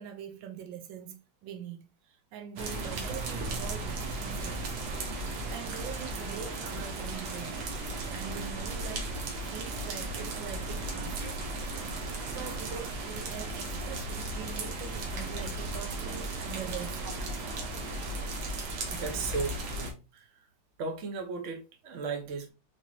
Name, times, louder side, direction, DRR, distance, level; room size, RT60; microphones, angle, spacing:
voice 1, 0.0-4.8 5.5-7.6 8.1-9.1 9.5-11.7 12.3-17.0, right 8 dB, 90° right, 1.4 m, -43 dB
sound 1, 2.6-19.9, right 2 dB, 70° right, 1.3 m, -36 dB
sound 2, 7.3-16.5, right 1 dB, 45° left, 1.0 m, -45 dB
voice 2, 18.9-20.2 20.8-22.5, right 4 dB, 55° right, 1.0 m, -36 dB
4.3 x 3.0 x 2.4 m
omnidirectional pair, 2.0 m